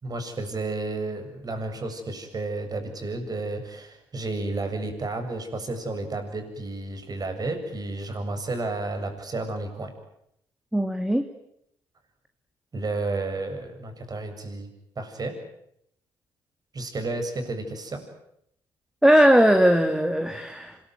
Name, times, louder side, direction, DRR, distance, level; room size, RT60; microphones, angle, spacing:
voice 1, 0.0-9.9 12.7-14.7 15.0-15.3 16.7-18.0, right 2 dB, 40° right, 6 dB, 7.6 m, -32 dB
voice 2, 10.7-11.2 19.0-20.8, equal, 5° right, 6 dB, 2.7 m, -19 dB
26.0 x 22.0 x 9.5 m, 0.76 s
supercardioid pair, 60°, 10 cm